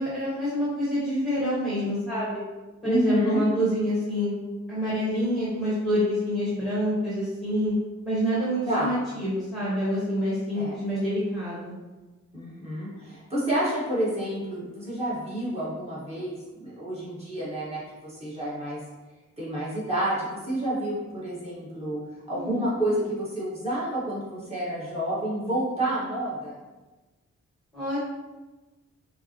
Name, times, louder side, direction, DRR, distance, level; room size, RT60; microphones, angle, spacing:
voice 1, 0.0-2.4 2.8-4.3 4.7-7.8 8.0-11.7 22.3-22.6 27.7-28.0, equal, ahead, -9 dB, 1.1 m, -27 dB
voice 2, 2.8-3.4 8.7-8.9 10.5-10.8 12.3-18.8 19.4-22.0 22.3-26.6, right 1 dB, 20° right, -8 dB, 1.5 m, -29 dB
5.6 x 2.1 x 2.9 m, 1.2 s
wide cardioid pair, 135°, 29 cm